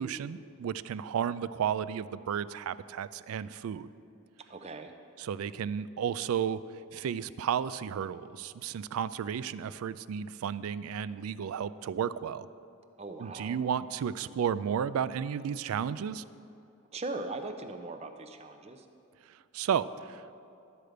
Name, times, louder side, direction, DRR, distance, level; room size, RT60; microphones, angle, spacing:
voice 1, 0.0-3.9 5.2-6.6 6.9-12.5 13.2-16.2 19.3-20.4, right 8 dB, 80° right, 16 dB, 0.3 m, -33 dB
voice 2, 4.5-4.9 13.0-13.6 16.9-18.9, right 2 dB, 30° right, 6 dB, 0.6 m, -39 dB
12.5 x 5.0 x 7.9 m, 2.6 s
head